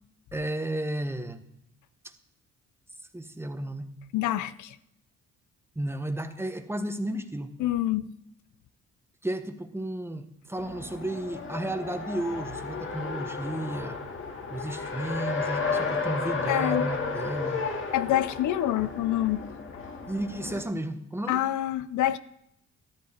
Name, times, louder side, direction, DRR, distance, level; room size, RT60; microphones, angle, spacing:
voice 1, 0.3-1.4 2.0-2.1 3.1-3.9 5.7-7.5 9.2-14.0 14.5-17.6 20.1-21.4, right 1 dB, 10° right, 1.2 m, -33 dB
voice 2, 4.1-4.8 7.6-8.1 16.5-16.9 17.9-19.5 21.3-22.2, left 13 dB, 75° left, 0.6 m, -26 dB
Race car auto racing, 10.6-20.6, left 4 dB, 40° left, 2.0 m, -33 dB
13.5 x 13.0 x 4.4 m
cardioid pair, 90°, 30 cm